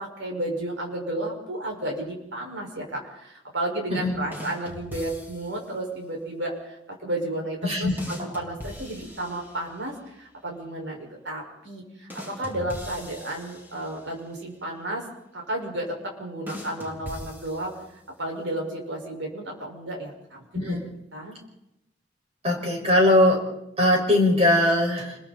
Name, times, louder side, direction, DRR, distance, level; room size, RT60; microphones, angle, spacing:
voice 1, 0.0-15.0 15.3-17.7 18.2-20.8 21.1-21.4, right 1 dB, 80° right, 0 dB, 5.8 m, -32 dB
sound 1, 4.3-5.7 8.0-9.9 12.1-14.2 16.5-18.1, equal, 10° right, 3.7 m, -41 dB
voice 2, 7.6-7.9 20.5-20.8 22.4-23.4 23.8-25.2, left 1 dB, 35° right, 0 dB, 5.9 m, -20 dB
29.5 x 22.0 x 4.3 m, 0.85 s
head